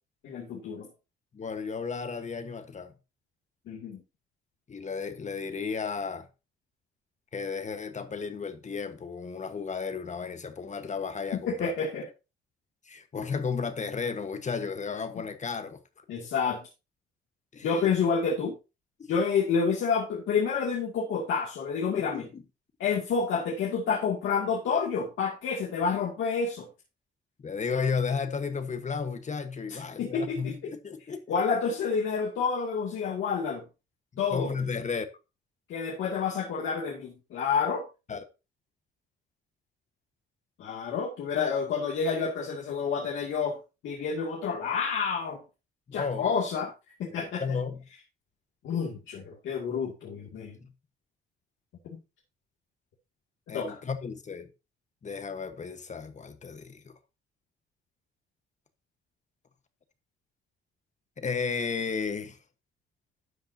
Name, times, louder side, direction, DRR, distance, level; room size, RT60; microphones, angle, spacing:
voice 1, 0.2-0.9 3.7-4.0 11.5-12.0 16.1-16.7 17.6-18.5 19.1-22.2 22.8-26.7 29.7-30.7 31.3-33.6 34.2-34.5 35.7-37.8 40.6-43.6 43.8-45.4 45.9-46.7 47.0-47.6 48.6-50.6 51.9-52.0 53.5-53.8, left 5 dB, 80° left, 2.3 m, -29 dB
voice 2, 1.3-2.9 4.7-6.3 7.3-11.7 12.9-15.8 16.2-16.3 17.5-17.7 19.0-19.1 21.9-22.4 25.8-25.9 27.4-31.4 34.3-35.1 38.1-38.2 45.9-46.3 47.1-47.8 50.6-50.7 53.5-54.5 55.0-56.9 61.2-62.4, left 5 dB, 35° left, 1.3 m, -33 dB
12.5 x 7.8 x 2.8 m
cardioid pair, 90°, 20 cm